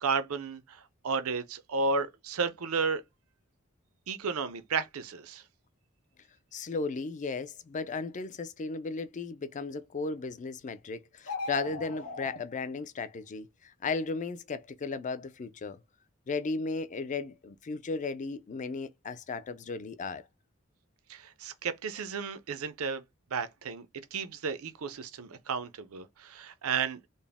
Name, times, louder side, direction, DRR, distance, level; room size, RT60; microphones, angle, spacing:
voice 1, 0.0-3.0 4.1-5.4 21.1-23.0 23.3-27.0, right 5 dB, 85° right, 0.6 m, -33 dB
voice 2, 6.5-15.8 16.3-20.2, left 4 dB, 35° left, 0.4 m, -35 dB
sound 1, 11.2-12.4, left 3 dB, 90° left, 1.0 m, -38 dB
3.9 x 2.1 x 3.5 m
head